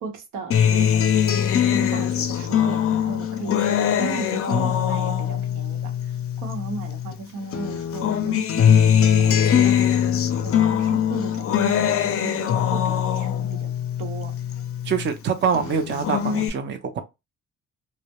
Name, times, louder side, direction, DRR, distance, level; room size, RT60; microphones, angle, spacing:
voice 1, 0.0-13.7 14.0-14.3, right 3 dB, 90° right, 0.8 m, -36 dB
Acoustic guitar, 0.5-7.2 7.5-15.1 15.5-16.5, left 9 dB, 50° left, 0.4 m, -22 dB
voice 2, 14.8-17.0, right 6 dB, 40° right, 0.5 m, -24 dB
2.2 x 2.1 x 2.8 m
cardioid pair, 90°, 30 cm